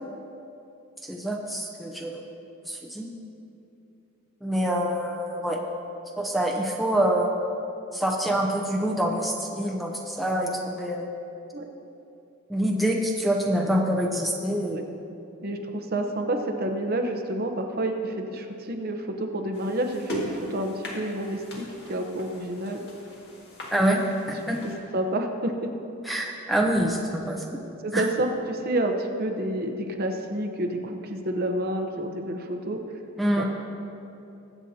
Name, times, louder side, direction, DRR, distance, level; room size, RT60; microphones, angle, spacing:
voice 1, 1.0-2.3 2.6-3.1 4.4-5.6 6.2-7.3 7.9-11.1 12.5-14.8 23.7-24.0 24.3-24.6 26.0-27.5 27.9-28.0 33.2-33.4, right 1 dB, ahead, 0 dB, 0.7 m, -26 dB
voice 2, 15.4-22.8 23.8-23.9 24.9-25.7 27.8-32.8 33.4-33.5, right 1 dB, 45° right, 4 dB, 0.8 m, -29 dB
sound 1, 19.5-24.8, equal, 50° left, 2.0 m, -39 dB
22.0 x 8.1 x 2.8 m, 2.8 s
head